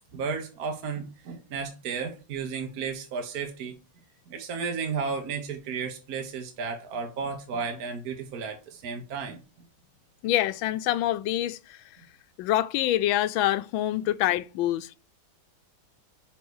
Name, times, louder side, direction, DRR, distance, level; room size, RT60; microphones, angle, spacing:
voice 1, 0.1-3.8 4.3-9.7, right 5 dB, 55° right, 1.4 m, -33 dB
voice 2, 10.2-11.8 12.4-15.0, left 13 dB, 85° left, 1.4 m, -26 dB
5.9 x 4.5 x 4.6 m
omnidirectional pair, 2.1 m